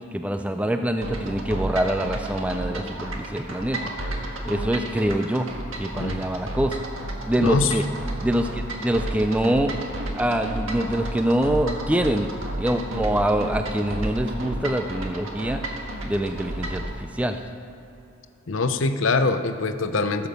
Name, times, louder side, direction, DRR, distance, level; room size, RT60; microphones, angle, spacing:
voice 1, 0.1-3.8 4.4-5.5 5.8-6.8 7.3-7.8 8.2-9.7 10.1-12.3 12.6-15.6 16.0-17.4, right 1 dB, 5° right, 6 dB, 0.4 m, -24 dB
sound 1, 1.0-16.9, right 1 dB, 85° right, 1.5 m, -32 dB
voice 2, 7.4-7.7 18.5-20.3, left 3 dB, 75° left, 9 dB, 0.7 m, -23 dB
15.0 x 7.1 x 6.6 m, 2.7 s
head